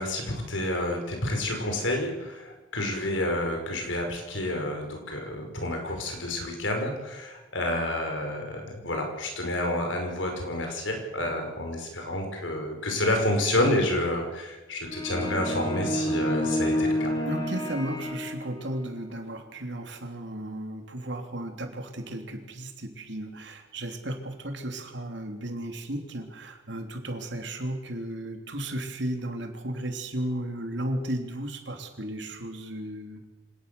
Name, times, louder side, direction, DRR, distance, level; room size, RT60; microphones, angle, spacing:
voice 1, 0.0-17.1, left 1 dB, 85° left, 3 dB, 5.5 m, -29 dB
sound 1, 14.9-18.8, equal, 25° left, 3.7 m, -29 dB
voice 2, 17.3-33.3, right 1 dB, 65° right, 4 dB, 3.3 m, -34 dB
25.5 x 18.5 x 7.0 m, 1.1 s
head